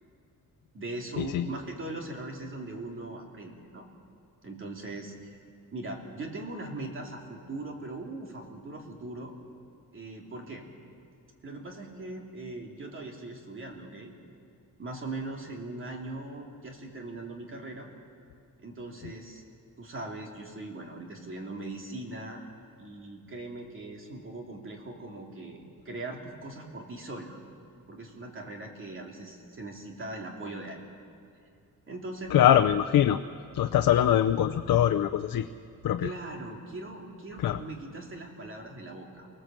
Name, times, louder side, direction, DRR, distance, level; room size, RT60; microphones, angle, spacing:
voice 1, 0.7-3.8 4.4-5.3 5.7-9.4 9.9-10.7 11.4-14.1 14.8-17.9 18.6-19.4 19.8-22.4 22.8-27.4 27.9-30.8 31.9-32.6 36.0-39.3, right 2 dB, 40° right, 1 dB, 2.8 m, -40 dB
voice 2, 32.3-33.2 33.5-35.5 35.8-36.1 37.4-37.6, left 11 dB, 90° left, 8 dB, 0.7 m, -23 dB
25.0 x 17.5 x 7.6 m, 2.6 s
wide cardioid pair, 180°, 33 cm